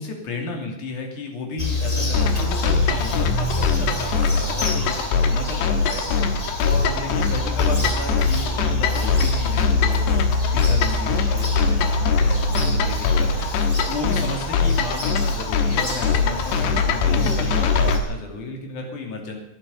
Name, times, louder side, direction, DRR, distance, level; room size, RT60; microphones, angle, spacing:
voice 1, 0.0-10.0 10.5-13.5 13.9-19.4, left 3 dB, 50° left, 2 dB, 3.8 m, -33 dB
Bird vocalization bird call bird song, 1.6-18.0, left 2 dB, 15° left, 1.3 m, -27 dB
sound 1, 2.1-18.0, left 4 dB, 80° left, 3.3 m, -22 dB
17.5 x 11.0 x 5.5 m, 0.91 s
omnidirectional pair, 4.7 m